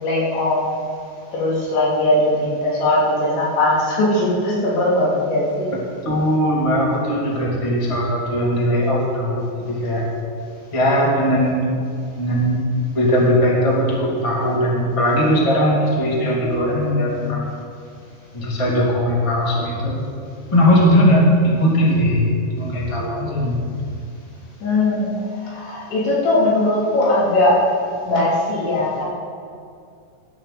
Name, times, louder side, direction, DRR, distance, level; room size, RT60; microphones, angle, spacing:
voice 1, 0.0-0.8 1.3-5.7 24.6-25.1 25.4-27.7 28.1-29.0, left 1 dB, 80° left, -6 dB, 5.6 m, -19 dB
voice 2, 5.7-10.1 10.7-11.7 12.2-12.6 12.9-17.5 18.3-20.1 20.5-23.5, equal, 10° left, -4 dB, 1.4 m, -19 dB
19.0 x 11.5 x 4.3 m, 2.3 s
omnidirectional pair, 5.1 m